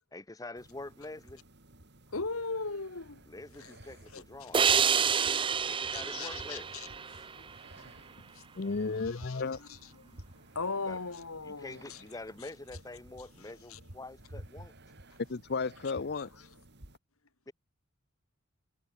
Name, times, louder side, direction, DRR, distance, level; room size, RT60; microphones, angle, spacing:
voice 1, 0.1-1.4 3.3-5.1 5.6-6.7 10.8-11.0 11.4-14.7 17.5-17.6, left 2 dB, 15° left, 0.8 m, -46 dB
sound 1, 0.6-17.0, right 1 dB, 55° right, 3.7 m, -54 dB
voice 2, 2.1-3.2 3.6-3.8 4.1-5.1 5.9-6.9 7.7-8.4 8.8-10.2 10.5-12.0 13.7-13.8 16.2-16.3, left 4 dB, 80° left, 2.0 m, -39 dB
sound 2, 4.5-7.8, right 7 dB, 25° right, 0.5 m, -28 dB
voice 3, 8.6-9.6 15.3-16.5, left 4 dB, 50° left, 0.7 m, -33 dB
head